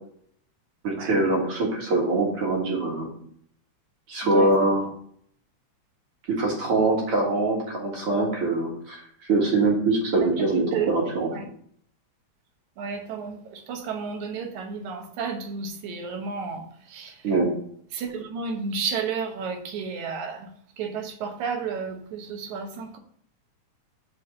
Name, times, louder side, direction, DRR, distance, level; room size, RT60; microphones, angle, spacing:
voice 1, 0.8-3.1 4.1-4.8 6.3-11.3 17.2-17.5, right 2 dB, 50° right, -1 dB, 2.4 m, -23 dB
voice 2, 12.8-16.6 16.9-17.1 17.9-20.5 20.8-23.0, right 5 dB, 75° right, 5 dB, 2.3 m, -32 dB
6.0 x 4.6 x 6.3 m, 0.63 s
omnidirectional pair, 3.5 m